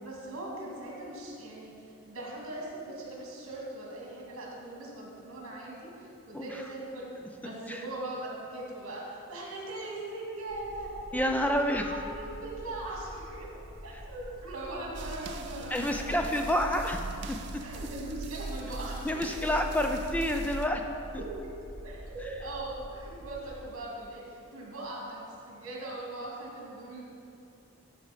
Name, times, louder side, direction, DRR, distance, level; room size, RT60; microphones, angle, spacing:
voice 1, 0.0-7.1 7.4-13.5 13.8-16.4 17.6-19.2 19.8-19.9 21.2-21.3 21.8-27.0, right 2 dB, 75° right, -3 dB, 2.2 m, -40 dB
sound 1, 10.5-23.5, equal, 65° left, 1.2 m, -46 dB
voice 2, 11.1-11.8 15.7-17.4 19.0-20.8, left 1 dB, 5° left, 3 dB, 0.4 m, -29 dB
sound 2, 14.9-20.7, right 3 dB, 50° right, 0.4 m, -40 dB
12.0 x 4.3 x 5.0 m, 2.6 s
head